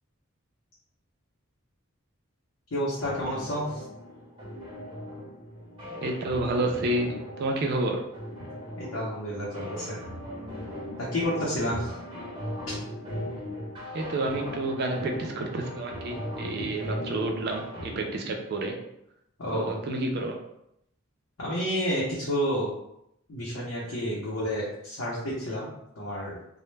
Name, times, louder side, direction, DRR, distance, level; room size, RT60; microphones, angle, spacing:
voice 1, 2.7-3.8 8.8-10.0 11.1-11.9 12.7-12.8 19.4-19.8 21.4-22.7 23.3-26.4, equal, 90° left, -7 dB, 0.7 m, -30 dB
sound 1, 3.0-18.0, equal, 25° right, 0.9 m, -38 dB
voice 2, 6.0-7.1 7.4-8.0 13.9-18.7 19.5-20.4, right 2 dB, 55° right, 2 dB, 0.4 m, -29 dB
2.1 x 2.0 x 3.1 m, 0.79 s
head